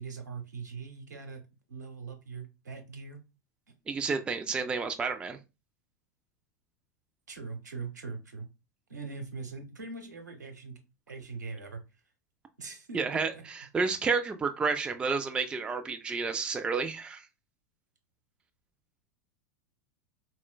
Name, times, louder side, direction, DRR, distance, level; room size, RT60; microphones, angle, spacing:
voice 1, 0.0-1.4 1.7-3.2 7.3-8.5 8.9-10.8 11.1-11.8 12.6-13.0 13.3-13.4, right 4 dB, 75° right, 0.8 m, -41 dB
voice 2, 3.9-5.4 12.9-17.2, right 4 dB, 10° right, 0.3 m, -30 dB
4.2 x 2.1 x 2.2 m
figure-of-eight pair, 90°, 9 cm